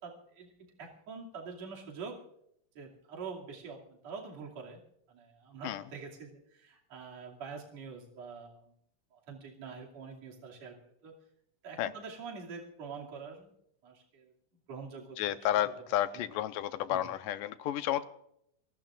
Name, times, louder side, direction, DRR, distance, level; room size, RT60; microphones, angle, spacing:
voice 1, 0.0-2.2 2.8-4.8 5.1-8.6 9.1-11.1 11.6-13.5 13.8-14.3 14.7-15.2 16.9-17.0, right 5 dB, 50° right, -1 dB, 3.6 m, -45 dB
voice 2, 15.2-18.1, left 12 dB, 80° left, 10 dB, 2.4 m, -31 dB
26.5 x 19.0 x 2.5 m, 0.73 s
omnidirectional pair, 3.9 m